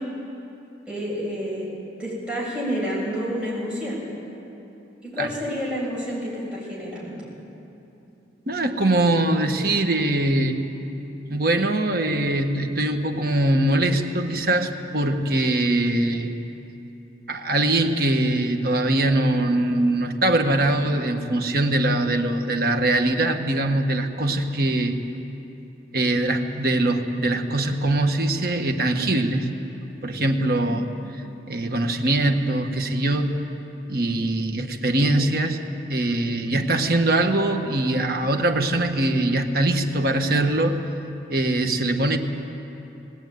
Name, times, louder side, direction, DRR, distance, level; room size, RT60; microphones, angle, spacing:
voice 1, 0.9-1.7 2.0-4.0 5.0-7.2, equal, 5° right, -6 dB, 7.8 m, -29 dB
voice 2, 8.5-10.6 11.3-16.3 17.3-25.0 25.9-29.5 30.0-30.9 31.5-33.4 33.9-35.6 35.9-40.8 41.3-42.2, right 1 dB, 55° right, 4 dB, 1.6 m, -22 dB
20.0 x 19.0 x 9.5 m, 3.0 s
head